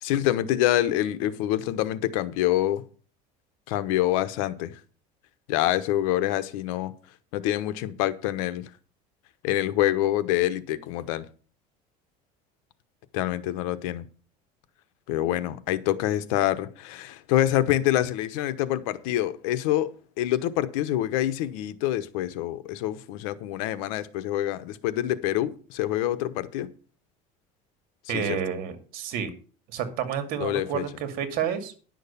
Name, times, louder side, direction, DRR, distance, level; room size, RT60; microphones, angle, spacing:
voice 1, 0.0-2.8 3.7-4.7 5.5-6.9 7.3-8.7 9.4-11.3 13.1-14.1 15.1-26.7 28.1-28.4 30.4-30.8, left 13 dB, 90° left, 1.0 m, -26 dB
voice 2, 28.1-29.3 29.7-31.7, right 8 dB, 60° right, 2.4 m, -30 dB
10.5 x 6.4 x 6.9 m
cardioid pair, 150°, 17 cm